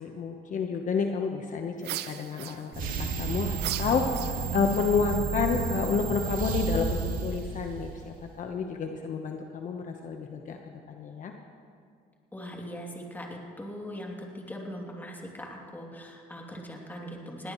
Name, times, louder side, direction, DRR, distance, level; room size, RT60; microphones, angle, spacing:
voice 1, 0.0-10.6 10.9-11.3, left 5 dB, 50° left, 3 dB, 1.2 m, -30 dB
sound 1, 1.8-3.0 3.6-4.7, right 13 dB, 75° right, 0.7 m, -37 dB
sound 2, 2.7-8.2, right 5 dB, 55° right, 2.4 m, -32 dB
voice 2, 12.3-17.5, equal, 10° left, -1 dB, 2.8 m, -40 dB
21.0 x 17.5 x 3.2 m, 2.3 s
cardioid pair, 110°, 17 cm